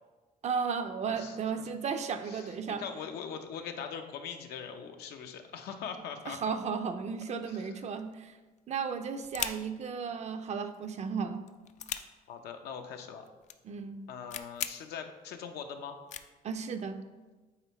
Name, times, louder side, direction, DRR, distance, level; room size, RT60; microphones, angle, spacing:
voice 1, 0.4-2.8 6.3-8.3 8.7-11.5 13.6-14.0 16.4-17.0, right 6 dB, 40° right, 9 dB, 0.5 m, -34 dB
voice 2, 1.1-1.7 2.2-6.6 7.5-7.8 12.3-13.2 14.1-16.0, left 7 dB, 75° left, 6 dB, 0.7 m, -42 dB
sound 1, 7.9-8.3 8.6-8.7 8.9-9.8 10.7-11.0 11.3-12.0 12.9-13.0 13.2-13.5 13.9-14.0 14.3-14.7 15.3-15.4 16.1-16.3, left 9 dB, 45° left, 0.4 m, -38 dB
8.8 x 3.5 x 3.1 m, 1.3 s
cardioid pair, 110°, 17 cm